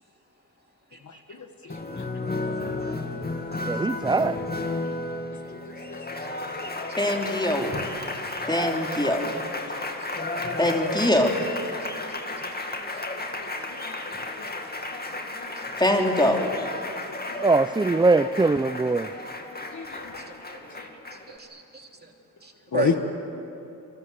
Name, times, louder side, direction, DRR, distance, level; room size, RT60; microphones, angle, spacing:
voice 1, 0.9-1.2 2.2-2.7 6.9-7.0 8.3-8.4 9.8-10.5 12.2-12.8 15.6-15.8 20.3-20.4 20.7-20.9 21.3-22.1 22.4-23.0, right 2 dB, 30° right, 2 dB, 3.1 m, -36 dB
Applause, 1.7-21.4, left 2 dB, 30° left, 2.3 m, -33 dB
voice 2, 3.7-4.4 17.4-19.1, right 3 dB, 15° right, 12 dB, 0.5 m, -21 dB
voice 3, 5.6-6.0 12.0-12.1 13.4-13.9 14.9-15.0 17.1-17.2 19.7-20.2 22.7-22.9, left 5 dB, 55° left, 7 dB, 1.7 m, -29 dB
voice 4, 7.0-7.7 8.5-9.3 10.6-11.3 15.8-16.5, left 1 dB, 10° left, 2 dB, 3.3 m, -23 dB
28.0 x 24.0 x 7.6 m, 2.8 s
cardioid pair, 75°, 34 cm